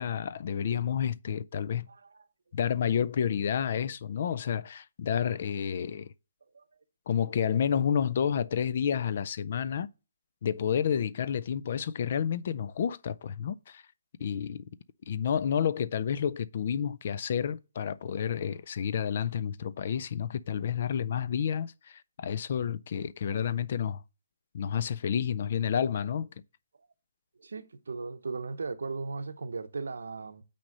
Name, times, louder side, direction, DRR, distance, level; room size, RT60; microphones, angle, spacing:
voice 1, 0.0-1.9 2.5-6.1 7.1-9.9 10.4-13.8 14.2-14.6 15.1-24.0 24.5-26.3, left 8 dB, 35° left, 0.3 m, -30 dB
voice 2, 1.9-2.2 6.5-6.6 27.4-30.4, right 4 dB, 90° right, 0.8 m, -37 dB
6.1 x 4.2 x 6.4 m
hypercardioid pair, 175°, 0 cm